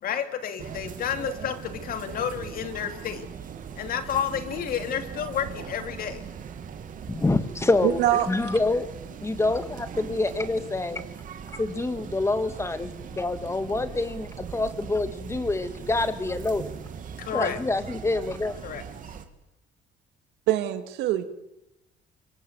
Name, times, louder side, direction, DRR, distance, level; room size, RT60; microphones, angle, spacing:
voice 1, 0.0-3.2 3.8-6.2 17.2-17.6 18.6-19.1, left 8 dB, 60° left, 8 dB, 2.8 m, -30 dB
sound 1, 0.6-19.3, right 7 dB, 50° right, 2.6 m, -40 dB
voice 2, 7.1-8.9 9.2-11.0 11.5-12.9 13.1-16.7 17.3-18.5, left 2 dB, 15° left, 10 dB, 2.2 m, -26 dB
voice 3, 7.8-8.3 20.5-21.2, right 13 dB, 90° right, 9 dB, 2.2 m, -23 dB
25.0 x 23.5 x 8.2 m, 0.92 s
cardioid pair, 110°, 17 cm